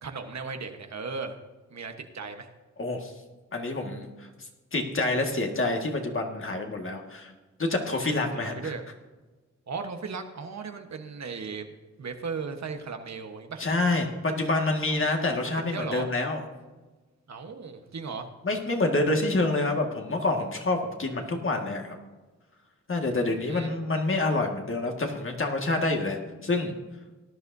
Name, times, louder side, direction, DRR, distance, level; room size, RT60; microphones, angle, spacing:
voice 1, 0.0-1.4 1.7-2.5 7.9-8.2 8.4-8.8 9.7-11.7 12.0-13.6 14.9-15.1 15.4-16.1 17.3-18.3 23.3-23.7, right 5 dB, 65° right, 5 dB, 1.2 m, -36 dB
voice 2, 2.8-3.1 3.5-4.3 4.7-7.3 7.6-8.7 13.6-16.4 18.4-22.0 22.9-26.8, left 2 dB, 45° left, 2 dB, 1.8 m, -27 dB
18.5 x 11.0 x 2.7 m, 1.3 s
wide cardioid pair, 95°, 29 cm